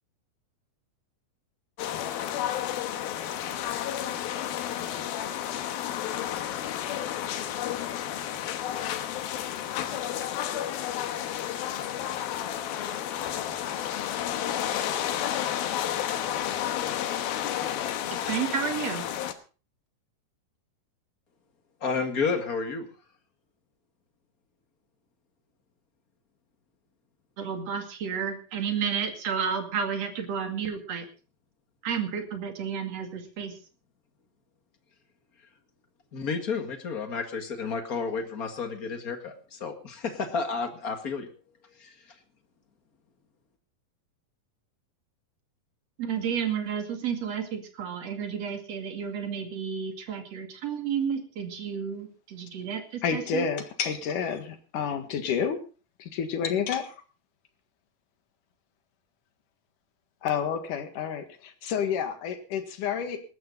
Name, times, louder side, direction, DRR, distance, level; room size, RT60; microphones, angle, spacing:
sound 1, 1.8-19.3, left 11 dB, 85° left, 3.1 m, -31 dB
voice 1, 18.2-19.0 27.4-31.1 31.8-33.5 46.0-53.5, right 7 dB, 50° right, 6 dB, 3.1 m, -31 dB
voice 2, 21.8-22.9 36.1-41.3 41.8-42.0, left 5 dB, 35° left, 6 dB, 1.4 m, -31 dB
voice 3, 53.0-55.6 56.0-56.9 60.2-63.2, left 7 dB, 65° left, 8 dB, 3.2 m, -29 dB
19.0 x 13.5 x 3.9 m, 0.35 s
omnidirectional pair, 4.2 m